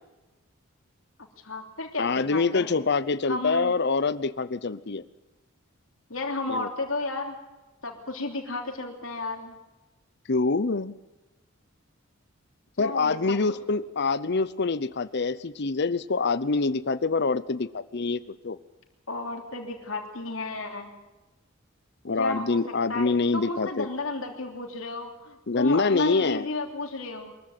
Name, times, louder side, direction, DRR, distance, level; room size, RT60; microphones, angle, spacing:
voice 1, 1.4-2.7 3.3-3.7 6.1-7.3 7.8-9.6 12.8-13.2 19.1-20.9 22.2-22.6 22.9-27.3, left 3 dB, 80° left, 3 dB, 3.2 m, -33 dB
voice 2, 2.0-5.0 6.5-6.7 10.3-10.9 12.8-18.6 22.0-23.9 25.5-26.5, left 4 dB, 55° left, 16 dB, 0.8 m, -25 dB
23.0 x 14.5 x 9.1 m, 1.1 s
head